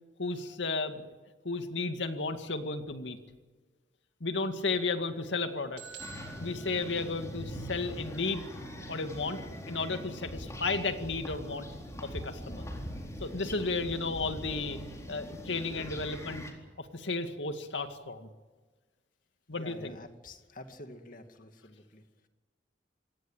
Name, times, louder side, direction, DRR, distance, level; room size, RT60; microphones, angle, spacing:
voice 1, 0.2-1.0 1.4-3.2 4.2-5.8 6.4-8.5 8.9-9.4 9.7-11.7 12.0-12.7 13.2-14.8 15.1-16.5 16.8-18.3 19.5-20.0, left 3 dB, 85° left, 7 dB, 2.1 m, -33 dB
sound 1, 5.8-7.7, right 6 dB, 70° right, 4.4 m, -49 dB
sound 2, 6.0-16.5, equal, 15° left, 4.1 m, -42 dB
voice 2, 19.5-22.0, left 1 dB, 50° left, 7 dB, 2.3 m, -48 dB
26.5 x 17.5 x 9.0 m, 1.3 s
head